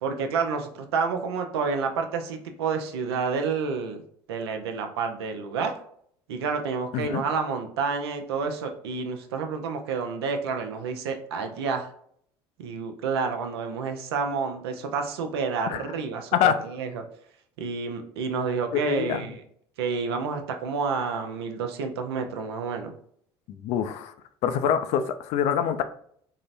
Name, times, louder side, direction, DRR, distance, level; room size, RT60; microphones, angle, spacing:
voice 1, 0.0-4.0 4.3-5.7 6.3-11.9 12.6-17.0 17.6-19.4 19.8-22.9, right 5 dB, 80° right, 5 dB, 0.5 m, -29 dB
voice 2, 18.7-19.3 23.6-24.1 24.4-25.8, left 9 dB, 60° left, 10 dB, 0.4 m, -25 dB
3.8 x 2.0 x 2.5 m, 0.64 s
hypercardioid pair, 70°, 13 cm